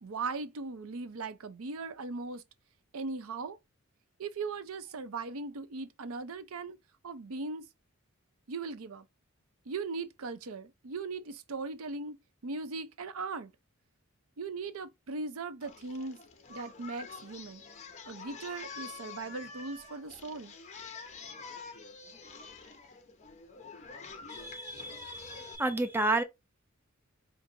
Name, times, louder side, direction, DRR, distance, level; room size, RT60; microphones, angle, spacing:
voice 1, 0.0-2.4 2.9-3.6 4.2-6.8 7.0-7.7 8.5-9.0 9.7-12.2 12.4-13.5 14.4-16.2 16.5-17.6 18.1-20.5, right 4 dB, 75° right, 0.6 m, -38 dB
Singing, 15.6-25.6, left 5 dB, 35° left, 0.7 m, -47 dB
voice 2, 24.3-26.2, right 2 dB, 10° right, 0.6 m, -31 dB
5.1 x 2.5 x 2.7 m
head